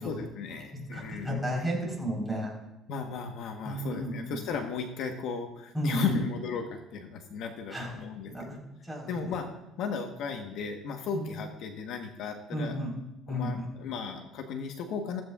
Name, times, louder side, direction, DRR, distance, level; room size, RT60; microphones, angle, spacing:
voice 1, 0.0-1.4 2.9-8.6 9.1-9.5 9.8-12.8 13.3-15.2, left 6 dB, 65° left, 4 dB, 1.1 m, -35 dB
voice 2, 0.9-2.5 3.6-4.4 5.7-6.2 7.7-7.9 8.3-8.6 8.8-9.2 11.1-11.2 12.5-12.9 13.3-13.7, equal, ahead, -3 dB, 4.1 m, -32 dB
15.5 x 15.0 x 2.4 m, 0.93 s
cardioid pair, 125°, 0 cm